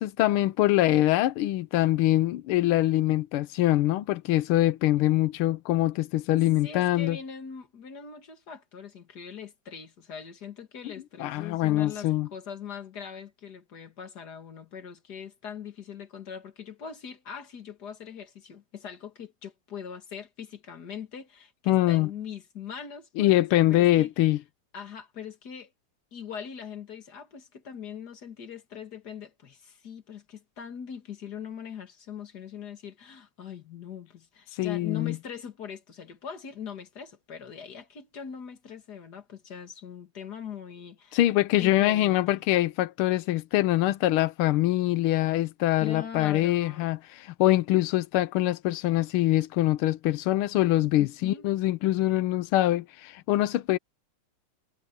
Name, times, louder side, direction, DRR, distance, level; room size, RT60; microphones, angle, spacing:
voice 1, 0.0-7.2 11.2-12.3 21.7-22.1 23.2-24.4 34.5-35.2 41.1-53.8, left 15 dB, 90° left, 1.6 m, -24 dB
voice 2, 6.6-24.1 24.7-25.7 26.1-41.2 41.5-42.5 45.8-46.9 51.0-51.4, left 7 dB, 50° left, 2.5 m, -41 dB
omnidirectional pair, 2.3 m